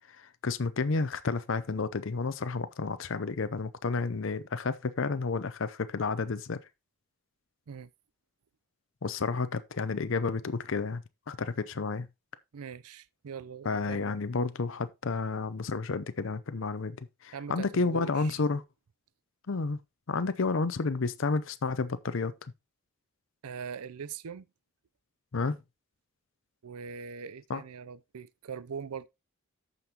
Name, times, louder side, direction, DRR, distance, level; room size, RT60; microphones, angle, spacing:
voice 1, 0.4-6.6 9.0-12.1 13.6-17.0 17.2-18.6 19.5-19.8 20.1-22.3 25.3-25.6 27.5-27.6, left 4 dB, 60° left, 0.6 m, -31 dB
voice 2, 12.5-14.1 17.3-18.3 23.4-24.5 26.6-29.1, right 6 dB, 85° right, 0.5 m, -41 dB
14.0 x 5.3 x 2.8 m
head